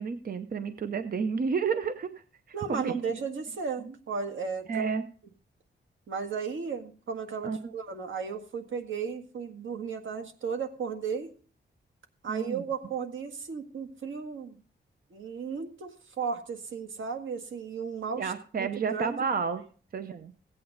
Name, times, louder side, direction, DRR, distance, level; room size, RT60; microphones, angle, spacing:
voice 1, 0.0-2.1 2.7-3.0 4.7-5.1 7.4-7.6 12.3-12.6 18.2-19.6 19.9-20.3, right 5 dB, 50° right, 10 dB, 0.7 m, -30 dB
voice 2, 2.5-4.9 6.1-11.3 12.2-14.6 15.1-18.3 18.6-19.2, right 6 dB, 85° right, 5 dB, 1.7 m, -35 dB
16.0 x 8.8 x 4.0 m, 0.42 s
wide cardioid pair, 145°, 20 cm